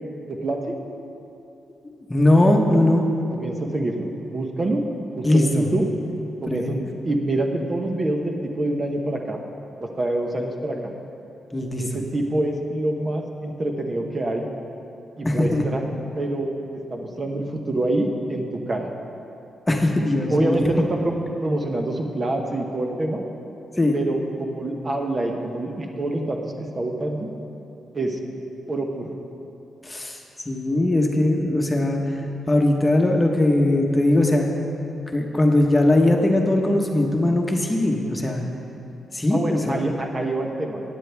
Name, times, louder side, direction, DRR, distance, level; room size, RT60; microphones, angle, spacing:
voice 1, 0.3-0.7 3.3-4.8 5.1-5.8 6.4-6.8 7.0-9.4 9.8-10.9 11.8-14.5 15.2-15.8 16.2-16.5 16.9-18.9 20.3-23.2 23.9-27.3 27.9-28.2 28.7-29.1 39.3-40.8, right 1 dB, 30° right, 2 dB, 0.9 m, -26 dB
voice 2, 2.1-3.1 5.2-5.6 6.5-6.8 11.5-11.8 15.2-15.6 19.7-20.6 23.8-24.0 29.8-32.0 32.5-34.5 35.1-38.5 39.1-39.8, left 1 dB, 15° left, 1 dB, 1.1 m, -20 dB
16.0 x 9.4 x 3.5 m, 2.8 s
cardioid pair, 110°, 0 cm